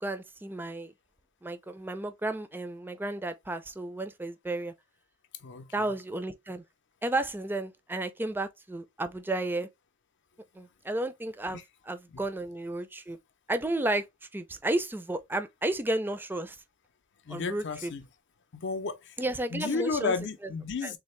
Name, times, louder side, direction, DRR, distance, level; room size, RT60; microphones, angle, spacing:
voice 1, 0.0-0.9 1.4-4.7 5.7-6.6 7.0-9.7 10.6-13.2 13.5-14.1 14.3-16.6 17.3-17.9 19.2-20.1 20.8-20.9, right 2 dB, 10° right, 0.4 m, -32 dB
voice 2, 17.3-18.0 18.5-19.1 19.5-21.0, left 4 dB, 60° left, 0.6 m, -32 dB
3.6 x 2.4 x 3.1 m
head